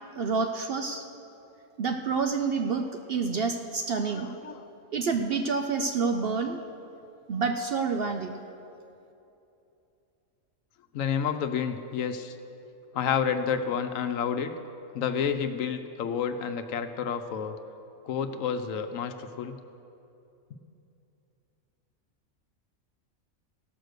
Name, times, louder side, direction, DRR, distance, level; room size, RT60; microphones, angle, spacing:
voice 1, 0.2-1.0 1.8-4.5 4.9-6.6 7.3-8.4, right 4 dB, 60° right, 5 dB, 0.6 m, -28 dB
voice 2, 4.1-4.6 10.9-12.4 12.9-14.5 14.9-17.5 18.0-19.6, left 7 dB, 75° left, 8 dB, 1.0 m, -30 dB
16.0 x 6.3 x 6.6 m, 2.8 s
omnidirectional pair, 1.4 m